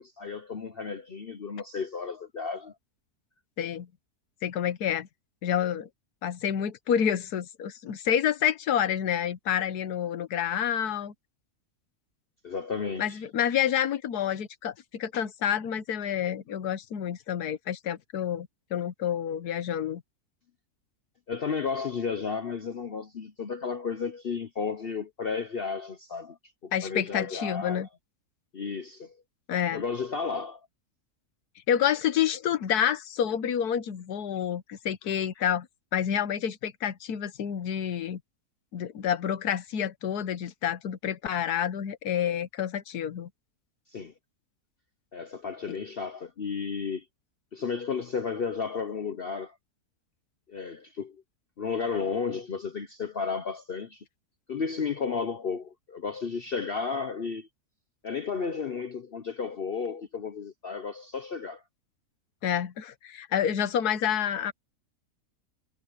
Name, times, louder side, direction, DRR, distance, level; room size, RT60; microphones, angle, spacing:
voice 1, 0.0-2.7 12.4-13.2 21.3-26.4 26.6-27.9 28.5-29.2 29.7-30.6 43.9-44.1 45.1-47.0 47.5-49.6 50.5-51.2 51.6-54.0 54.5-57.5 58.0-61.6, left 5 dB, 45° left, 0.9 m, -33 dB
voice 2, 3.6-3.9 4.4-5.1 5.4-5.9 6.2-11.1 13.0-20.0 26.7-27.9 29.5-29.8 31.7-35.7 35.9-38.2 38.7-43.3 45.7-45.8 62.4-64.5, left 9 dB, 90° left, 1.5 m, -28 dB
omnidirectional pair, 1.6 m